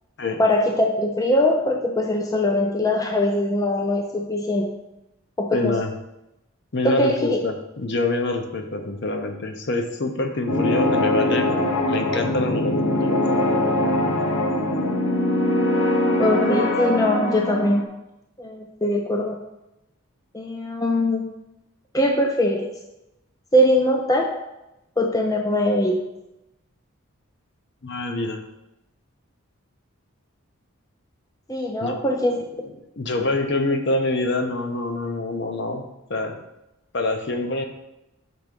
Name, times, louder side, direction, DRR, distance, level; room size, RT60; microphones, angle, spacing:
voice 1, 0.4-4.7 5.4-5.8 6.8-7.4 16.2-17.8 18.4-19.4 20.3-21.3 21.9-22.7 23.5-24.3 25.0-26.0 31.5-32.4, left 1 dB, 15° left, 1 dB, 0.4 m, -21 dB
voice 2, 5.5-5.9 6.7-11.5 11.9-13.2 27.8-28.4 31.8-32.0 32.6-35.8 36.1-36.4 36.9-37.6, left 2 dB, 50° left, 5 dB, 0.7 m, -25 dB
sound 1, 10.5-17.8, left 1 dB, 75° left, 1.0 m, -22 dB
6.0 x 3.5 x 5.1 m, 0.91 s
head